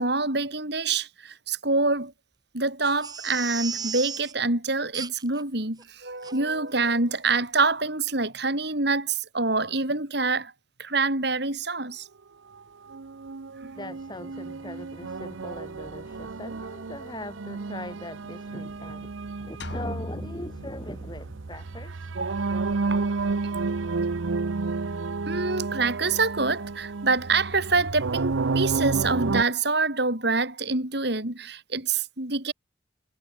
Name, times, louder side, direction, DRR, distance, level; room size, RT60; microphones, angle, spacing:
voice 1, 0.0-2.1 2.5-10.5 10.8-12.1 13.6-13.7 22.2-22.5 22.9-23.0 25.3-32.5, right 3 dB, 55° right, 3.9 m, -26 dB
Crying sobbing, 2.8-4.3 4.9-5.4 5.8-5.9 6.2-6.4 6.8-7.0 7.2-7.3, right 6 dB, 20° right, 1.4 m, -35 dB
sound 1, 12.9-29.4, right 3 dB, 80° right, 0.7 m, -31 dB
voice 2, 13.8-22.1, left 1 dB, 20° left, 6.4 m, -40 dB
sound 2, 19.6-21.5, left 1 dB, 60° left, 7.0 m, -38 dB
head